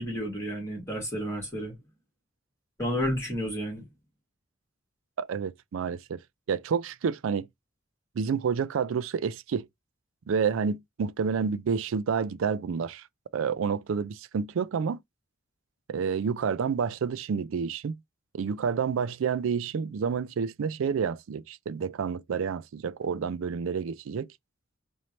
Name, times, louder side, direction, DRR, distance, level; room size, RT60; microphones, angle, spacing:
voice 1, 0.0-1.8 2.8-3.8, equal, 15° left, 2.3 m, -31 dB
voice 2, 5.2-6.2 6.5-7.5 8.2-9.7 10.3-13.1 13.3-15.0 15.9-18.0 18.3-24.3, right 6 dB, 75° right, 0.4 m, -29 dB
4.3 x 2.6 x 3.1 m
head